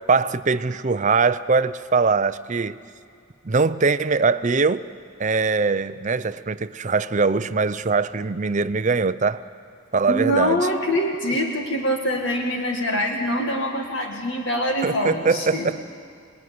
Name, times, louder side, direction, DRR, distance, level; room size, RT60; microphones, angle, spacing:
voice 1, 0.1-2.8 3.4-4.8 5.2-9.4 9.9-10.6 14.8-15.8, right 4 dB, 35° right, 0.6 m, -22 dB
voice 2, 10.1-15.7, equal, 60° left, 2.1 m, -24 dB
26.0 x 20.5 x 9.6 m
head